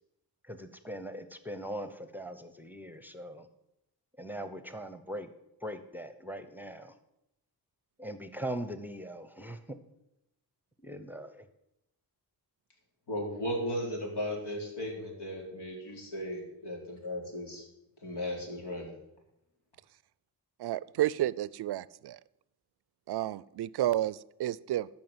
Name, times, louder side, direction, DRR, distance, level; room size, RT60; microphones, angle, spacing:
voice 1, 0.5-3.5 4.2-5.3 5.6-6.9 8.0-9.8 10.8-11.5, equal, 5° right, 10 dB, 0.9 m, -40 dB
voice 2, 13.1-17.6 18.0-18.9, equal, 80° left, 0 dB, 4.1 m, -36 dB
voice 3, 20.6-22.2 23.1-24.9, right 13 dB, 70° right, 20 dB, 0.5 m, -31 dB
13.5 x 6.0 x 7.9 m, 0.85 s
cardioid pair, 95°, 40 cm